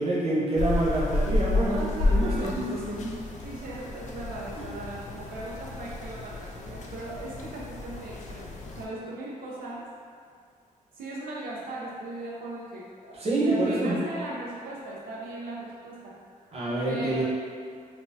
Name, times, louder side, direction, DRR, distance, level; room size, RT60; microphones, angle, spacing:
voice 1, 0.0-3.1 13.1-14.0 16.5-17.2, right 1 dB, 45° right, -7 dB, 0.8 m, -27 dB
sound 1, 0.6-8.9, left 2 dB, 55° left, 0.4 m, -31 dB
voice 2, 1.7-2.6 3.4-9.9 10.9-16.2 16.9-17.2, right 2 dB, 90° right, -5 dB, 0.5 m, -38 dB
4.1 x 2.2 x 2.6 m, 2.2 s
wide cardioid pair, 135°, 15 cm